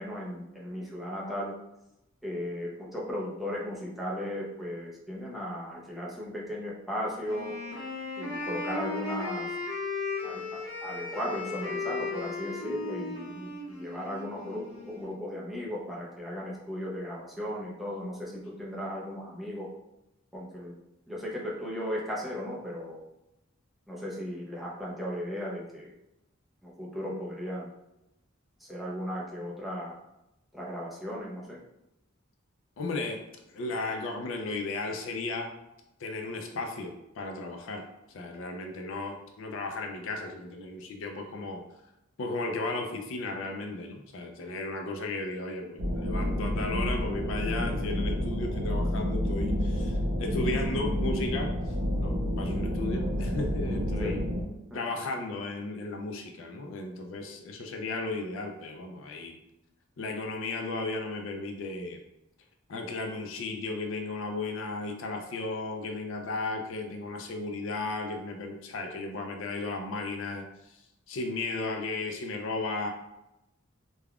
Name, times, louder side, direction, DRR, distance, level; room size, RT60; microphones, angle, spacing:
voice 1, 0.0-1.5 2.2-7.5 8.2-9.5 10.2-19.7 20.3-20.7 21.1-23.0 23.9-25.9 26.6-27.7 28.6-30.0 30.5-31.6 54.0-54.2 54.7-54.8, equal, ahead, -6 dB, 0.6 m, -36 dB
Wind instrument woodwind instrument, 7.2-15.1, left 3 dB, 90° left, 0.8 m, -36 dB
voice 2, 32.8-35.5 36.0-37.8 38.1-41.6 42.2-51.5 52.0-54.2 54.7-59.4 60.0-62.0 62.7-70.8 71.1-72.9, left 2 dB, 70° left, 3 dB, 0.4 m, -35 dB
sound 1, 45.8-54.4, equal, 45° right, 0.5 m, -29 dB
3.3 x 2.2 x 2.3 m, 0.88 s
head